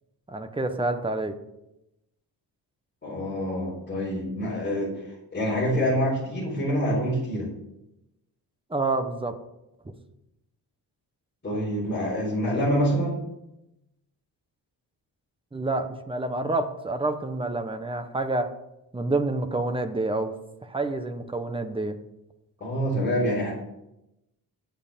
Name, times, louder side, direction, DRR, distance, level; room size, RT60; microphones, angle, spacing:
voice 1, 0.3-1.4 8.7-9.3 15.5-18.5 18.9-20.3 20.6-22.0, right 2 dB, 15° right, 7 dB, 1.1 m, -28 dB
voice 2, 3.0-7.5 11.4-13.2 22.6-23.5, equal, 25° left, -8 dB, 4.6 m, -26 dB
9.1 x 7.9 x 7.4 m, 0.87 s
wide cardioid pair, 150°, 40 cm